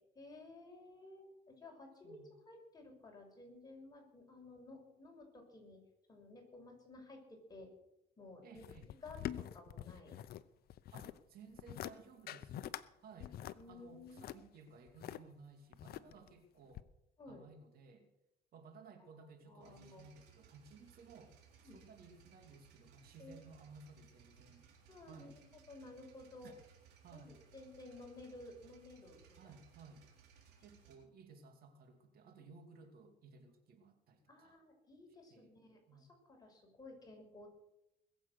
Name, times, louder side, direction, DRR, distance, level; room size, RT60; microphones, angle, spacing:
voice 1, 0.0-5.8 6.1-7.7 8.2-8.6 9.0-10.2 11.0-11.1 13.5-14.2 17.2-17.4 19.1-20.1 21.6-21.8 23.2-23.5 24.9-26.5 27.1-29.6 34.3-37.5, left 2 dB, 25° left, 1 dB, 5.9 m, -55 dB
voice 2, 8.4-8.9 10.9-13.4 13.7-16.9 17.3-18.1 18.5-24.7 25.1-25.4 26.4-26.5 27.0-27.4 29.4-30.1 30.6-34.6 35.3-35.5 35.9-36.1, right 4 dB, 65° right, 5 dB, 2.5 m, -58 dB
sound 1, 8.6-10.4 10.7-11.2 11.6-11.9 12.3-12.8 13.2-15.2 15.7-16.3 16.7-16.8, left 12 dB, 65° left, 0.7 m, -45 dB
sound 2, 19.6-31.0, right 7 dB, 85° right, 4.0 m, -64 dB
21.0 x 8.1 x 6.6 m, 0.83 s
cardioid pair, 110°, 17 cm